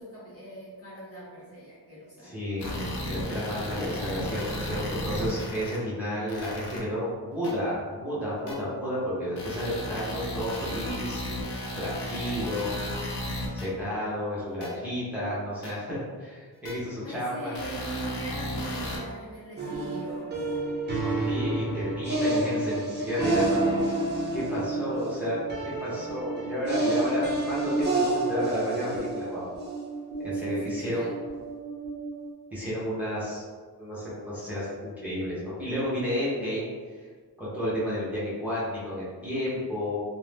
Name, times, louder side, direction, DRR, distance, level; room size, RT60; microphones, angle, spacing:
voice 1, 0.0-2.6 13.7-13.9 16.9-20.3 30.3-31.1, right 2 dB, 35° left, -8 dB, 0.7 m, -42 dB
voice 2, 2.2-12.8 13.5-17.5 20.9-23.6 24.3-25.4 25.8-29.4 30.2-31.1 32.5-33.4 33.8-37.1 37.4-40.0, equal, 5° right, -10 dB, 0.8 m, -32 dB
sound 1, 2.6-5.8 6.3-6.8 7.4-7.5 8.5-8.6 9.4-13.7 14.6-14.7 15.6-15.7 16.7-16.8 17.5-19.0, left 1 dB, 90° left, 0.7 m, -34 dB
sound 2, 19.6-32.3, right 2 dB, 25° right, 0.5 m, -29 dB
2.6 x 2.1 x 3.2 m, 1.5 s
wide cardioid pair, 165°, 39 cm